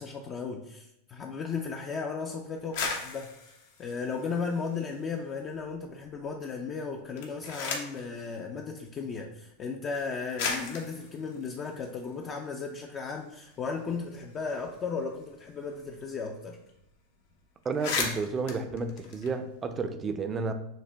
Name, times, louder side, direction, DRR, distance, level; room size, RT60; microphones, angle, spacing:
voice 1, 0.0-3.3 3.8-16.6, left 5 dB, 30° left, 2 dB, 0.5 m, -35 dB
sound 1, 2.6-5.1 5.5-6.2 7.0-8.1 9.1-9.2 9.9-10.0 10.4-12.7 13.0-13.1 13.4-16.0 16.3-16.4 16.7-16.9 17.3-17.4 17.6-19.8, left 4 dB, 70° left, 1.0 m, -37 dB
voice 2, 17.6-20.5, right 4 dB, 25° right, 8 dB, 0.5 m, -31 dB
6.4 x 2.2 x 3.3 m, 0.80 s
supercardioid pair, 125°, 0 cm